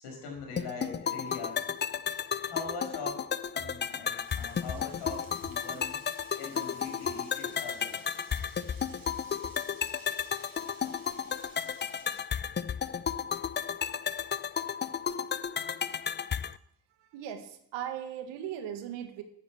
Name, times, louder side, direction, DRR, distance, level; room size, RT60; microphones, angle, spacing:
voice 1, 0.0-1.6 2.4-3.3 3.5-6.0 6.4-8.0, left 3 dB, 70° left, 1 dB, 5.6 m, -42 dB
sound 1, 0.6-16.6, left 7 dB, 25° left, 0.5 m, -33 dB
Frying (food), 4.2-12.2, right 5 dB, 50° right, 3.9 m, -56 dB
voice 2, 17.0-19.2, right 10 dB, 80° right, 7 dB, 1.7 m, -38 dB
9.7 x 9.5 x 7.4 m, 0.74 s
supercardioid pair, 60°, 43 cm